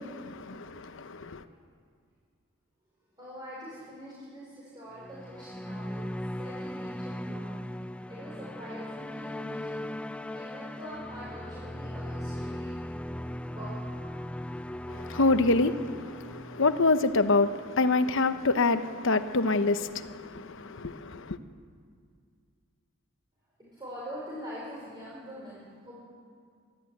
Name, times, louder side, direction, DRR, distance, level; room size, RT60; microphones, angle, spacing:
voice 1, 0.0-1.4 14.9-21.4, left 3 dB, 65° left, 1.0 m, -26 dB
voice 2, 3.2-6.1 6.4-7.5 8.1-9.9 10.2-12.8 13.5-13.9 23.6-26.0, equal, 20° right, 5.3 m, -44 dB
sound 1, 5.0-17.4, left 1 dB, 5° left, 0.4 m, -38 dB
24.0 x 13.5 x 9.3 m
head